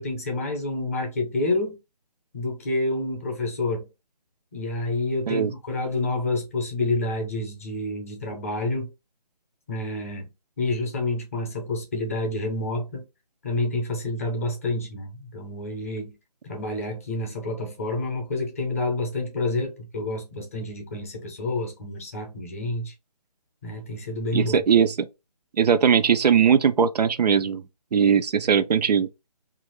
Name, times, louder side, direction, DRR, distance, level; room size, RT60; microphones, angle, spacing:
voice 1, 0.0-1.8 2.3-3.9 4.5-8.9 9.7-10.3 10.6-13.0 13.4-16.2 16.4-22.9 23.6-24.6, left 2 dB, 20° left, 0.6 m, -28 dB
voice 2, 24.3-25.1 25.6-27.6 27.9-29.1, right 7 dB, 80° right, 0.4 m, -20 dB
2.7 x 2.5 x 3.0 m
hypercardioid pair, 165°, 21 cm